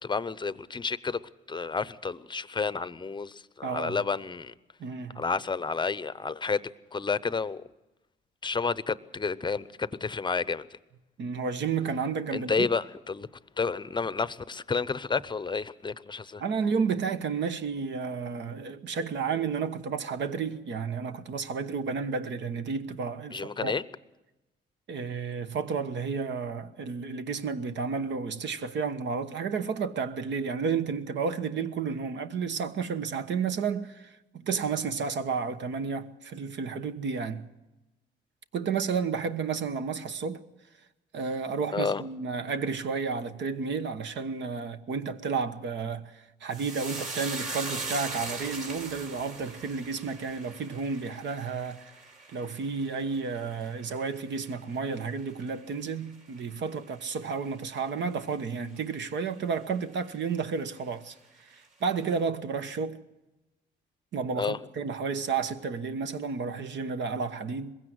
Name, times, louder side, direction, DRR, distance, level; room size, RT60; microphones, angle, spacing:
voice 1, 0.0-1.2 1.5-4.5 5.2-7.6 8.4-10.6 12.3-13.3 13.6-16.4 23.3-23.8 41.7-42.0 64.4-64.6, left 4 dB, 25° left, 0.7 m, -30 dB
voice 2, 3.6-4.0 4.8-5.2 11.2-12.7 16.4-23.7 24.9-37.5 38.5-40.4 41.1-51.9 52.3-63.0 64.1-67.7, right 5 dB, 65° right, 1.2 m, -32 dB
sound 1, 46.5-55.1 55.4-56.1 56.4-56.6, right 3 dB, 40° right, 4.1 m, -40 dB
21.5 x 16.0 x 7.8 m
cardioid pair, 90°, 20 cm